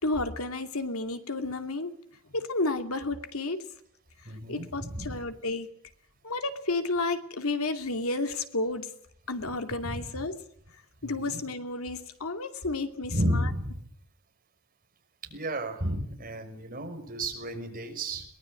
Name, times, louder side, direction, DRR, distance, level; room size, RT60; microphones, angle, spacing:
voice 1, 0.0-1.9 2.3-3.7 4.5-5.7 6.2-8.9 9.3-10.4 11.0-13.5, left 2 dB, 75° left, 7 dB, 2.5 m, -31 dB
voice 2, 4.3-5.2 9.8-10.0 11.0-11.4 13.1-13.8 15.3-18.2, right 1 dB, 40° right, 4 dB, 5.8 m, -32 dB
22.5 x 19.5 x 9.7 m, 0.66 s
head